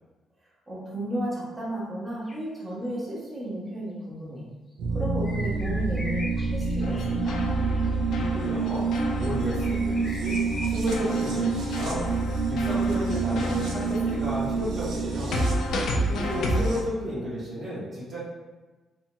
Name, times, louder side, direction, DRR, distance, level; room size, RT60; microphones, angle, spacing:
voice 1, 0.7-4.5 4.9-7.4 15.8-16.7, right 1 dB, 20° right, -7 dB, 1.0 m, -34 dB
sound 1, 2.3-2.4 5.2-8.2 8.5-8.9 9.4-11.7 13.1-13.2, left 1 dB, 25° left, 0.6 m, -41 dB
sound 2, 4.8-16.8, right 4 dB, 80° right, 0.4 m, -28 dB
sound 3, 6.8-10.5 10.9-16.8, left 1 dB, 80° left, 0.4 m, -32 dB
voice 2, 8.1-8.9 9.2-10.4 10.7-12.1 12.4-15.4 16.1-18.2, equal, 55° right, -7 dB, 0.9 m, -33 dB
2.8 x 2.7 x 2.2 m, 1.2 s
cardioid pair, 90°, 0 cm